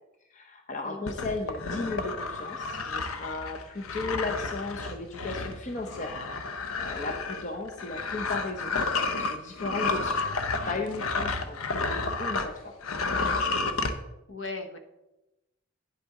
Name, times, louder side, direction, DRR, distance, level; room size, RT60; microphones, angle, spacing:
voice 1, 0.3-8.8 9.0-10.2 10.6-12.7, left 3 dB, 35° left, 3 dB, 0.7 m, -36 dB
voice 2, 0.8-1.1 14.3-14.8, left 3 dB, 60° left, 6 dB, 1.0 m, -37 dB
sound 1, 1.1-12.5 12.8-13.9, left 3 dB, 85° left, 0.8 m, -31 dB
9.3 x 8.2 x 3.7 m, 0.96 s
head